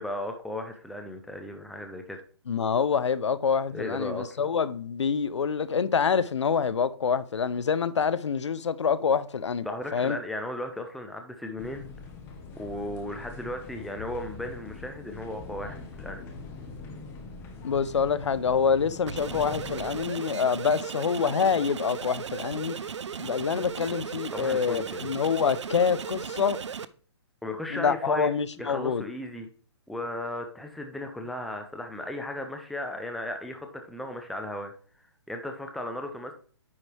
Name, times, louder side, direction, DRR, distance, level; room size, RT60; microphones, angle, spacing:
voice 1, 0.0-2.2 3.7-4.5 9.6-11.9 12.6-16.3 24.3-25.1 27.4-28.3 28.6-29.5 29.9-34.7 35.3-36.3, left 1 dB, ahead, 0.3 m, -35 dB
voice 2, 2.5-9.7 9.9-10.2 17.6-22.8 23.2-26.6 27.7-29.0, left 6 dB, 90° left, 0.6 m, -26 dB
sound 1, 11.6-20.0, left 4 dB, 15° left, 1.0 m, -43 dB
sound 2, 19.0-26.9, right 6 dB, 85° right, 0.5 m, -36 dB
9.7 x 4.5 x 3.3 m
hypercardioid pair, 155°, 15 cm